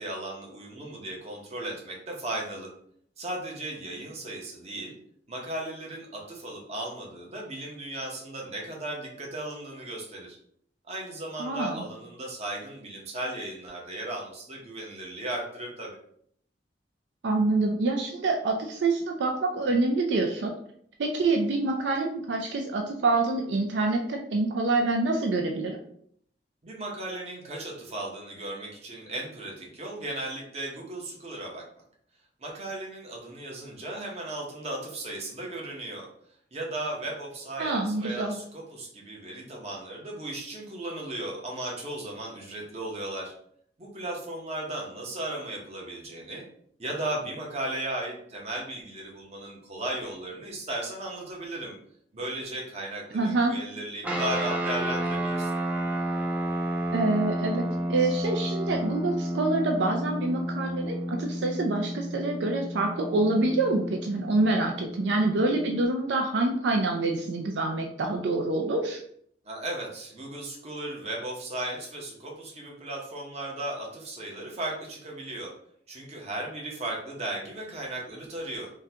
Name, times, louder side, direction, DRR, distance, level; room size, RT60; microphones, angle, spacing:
voice 1, 0.0-2.7 3.2-4.9 5.3-10.4 10.9-16.0 26.6-31.6 32.4-36.1 36.5-43.3 43.8-46.4 46.8-51.8 52.1-55.5 69.4-75.5 75.9-78.7, right 1 dB, 35° right, -1 dB, 0.8 m, -36 dB
voice 2, 11.4-11.8 17.2-20.5 21.0-25.8 37.6-38.4 53.1-53.5 56.9-69.0, right 2 dB, 80° right, 3 dB, 0.4 m, -26 dB
sound 1, 54.0-65.9, right 1 dB, 10° right, 0.4 m, -31 dB
3.7 x 2.2 x 2.7 m, 0.66 s
head